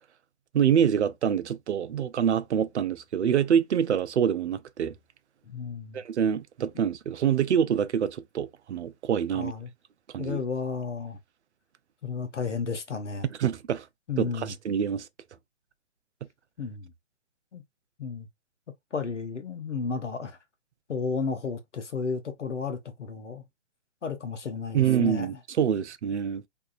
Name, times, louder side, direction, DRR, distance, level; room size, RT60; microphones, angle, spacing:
voice 1, 0.5-4.9 5.9-9.5 10.1-10.4 13.4-13.9 14.2-15.1 24.7-26.4, right 8 dB, 70° right, 0.5 m, -26 dB
voice 2, 5.5-6.0 9.3-9.7 10.2-11.2 12.0-13.3 14.1-14.5 16.6-16.9 17.5-17.6 18.0-18.3 18.9-20.4 20.9-23.4 24.0-25.3, left 5 dB, 85° left, 0.8 m, -33 dB
2.6 x 2.3 x 2.4 m
figure-of-eight pair, 135°, 35 cm